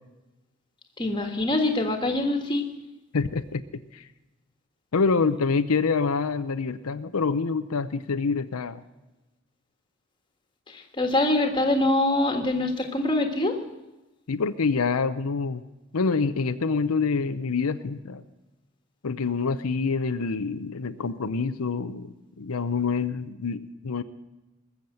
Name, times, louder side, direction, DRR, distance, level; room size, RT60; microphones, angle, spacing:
voice 1, 1.0-2.6 10.7-13.6, left 2 dB, 20° left, 4 dB, 1.6 m, -24 dB
voice 2, 3.1-3.6 3.9-4.0 4.9-8.8 14.3-15.6 15.9-18.2 19.0-24.0, left 4 dB, 90° left, 10 dB, 0.7 m, -26 dB
20.5 x 7.3 x 7.7 m, 1.0 s
head